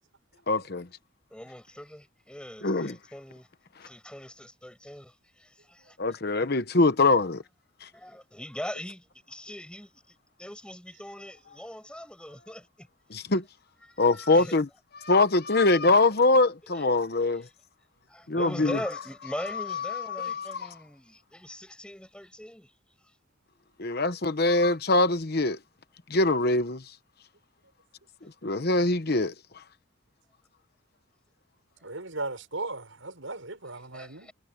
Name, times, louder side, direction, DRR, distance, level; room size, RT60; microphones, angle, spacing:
voice 1, 0.5-0.9 2.6-2.9 6.0-7.4 7.8-7.9 13.1-13.4 14.0-14.7 15.0-17.5 18.3-18.8 19.7-20.7 23.8-25.6 26.1-26.8 28.4-29.3, left 2 dB, 50° left, 1.0 m, -23 dB
voice 2, 1.3-3.5 3.8-6.0 7.9-12.9 13.8-14.6 16.7-16.8 17.3-17.4 18.1-22.7 23.0-23.1 28.2-28.3 33.7-34.3, equal, 5° left, 6.3 m, -41 dB
voice 3, 31.8-34.3, right 2 dB, 80° right, 5.6 m, -37 dB
head